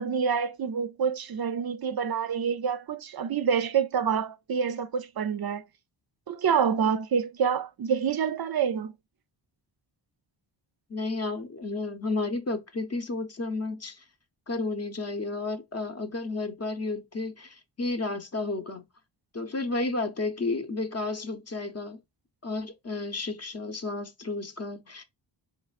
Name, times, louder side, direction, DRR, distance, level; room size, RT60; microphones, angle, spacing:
voice 1, 0.0-5.6 6.3-8.9, right 7 dB, 50° right, 0.5 m, -27 dB
voice 2, 10.9-14.0 14.5-18.8 19.3-22.0 22.4-25.0, left 3 dB, 35° left, 0.8 m, -32 dB
4.1 x 3.2 x 2.4 m
cardioid pair, 75°, 47 cm